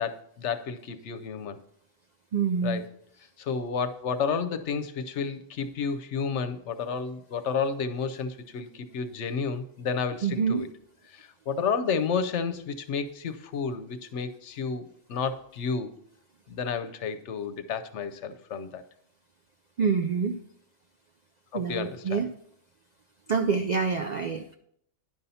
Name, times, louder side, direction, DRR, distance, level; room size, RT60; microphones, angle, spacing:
voice 1, 0.0-1.6 2.6-2.8 3.4-10.7 11.1-15.9 16.5-18.8 21.5-22.2, left 5 dB, 75° left, 10 dB, 1.0 m, -31 dB
voice 2, 2.3-2.8 10.2-10.6 19.8-20.4 21.5-22.3 23.3-24.5, right 5 dB, 65° right, 6 dB, 0.4 m, -26 dB
10.5 x 5.5 x 4.1 m, 0.69 s
omnidirectional pair, 1.2 m